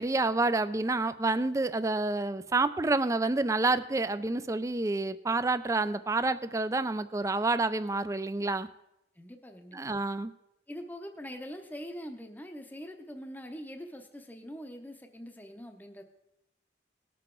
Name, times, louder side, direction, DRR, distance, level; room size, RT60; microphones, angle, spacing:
voice 1, 0.0-8.7 9.7-10.3, right 3 dB, 15° right, 13 dB, 0.3 m, -28 dB
voice 2, 9.2-9.9 10.7-16.0, equal, 10° left, 4 dB, 0.7 m, -43 dB
18.5 x 6.8 x 3.8 m, 0.88 s
head